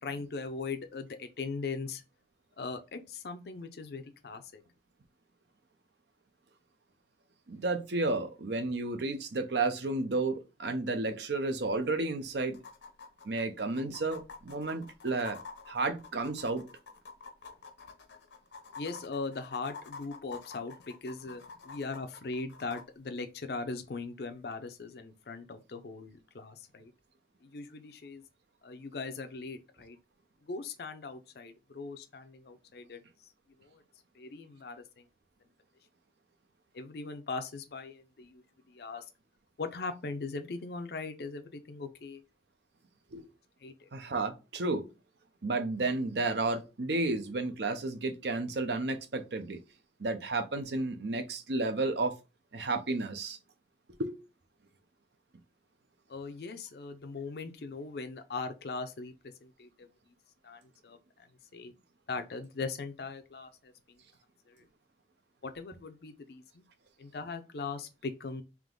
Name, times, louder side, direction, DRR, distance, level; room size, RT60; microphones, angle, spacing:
voice 1, 0.0-2.0 2.6-4.6 18.8-26.9 27.4-28.2 28.6-30.0 30.5-33.0 33.6-33.8 34.1-35.0 36.7-39.1 39.6-42.2 43.6-43.9 56.1-59.1 59.4-59.9 60.4-61.0 61.5-61.7 62.1-63.7 64.5-64.6 65.4-66.6 67.0-68.4, left 4 dB, 60° left, 0.5 m, -40 dB
voice 2, 7.5-12.6 13.2-15.4 15.7-16.6 43.1-43.3 43.9-44.8 45.4-49.6 50.0-52.1 52.5-53.4 54.0-54.1, right 3 dB, 70° right, 0.7 m, -32 dB
sound 1, 11.5-11.6 11.8-11.9 12.5-22.8 24.5-24.6, left 4 dB, 90° left, 0.9 m, -48 dB
3.6 x 2.9 x 3.7 m
head